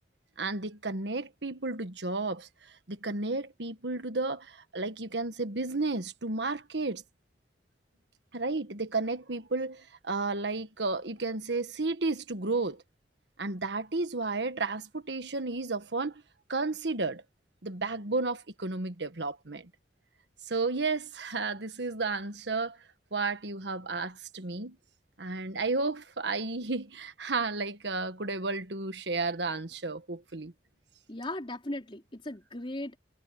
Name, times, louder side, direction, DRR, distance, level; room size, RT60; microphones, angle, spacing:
voice 1, 0.4-7.0 8.3-12.8 13.4-16.2 16.5-17.2 17.6-19.7 20.4-22.8 23.1-24.8 25.2-30.5, right 3 dB, 75° right, 1.5 m, -32 dB
voice 2, 31.1-33.0, left 1 dB, 30° left, 4.1 m, -37 dB
head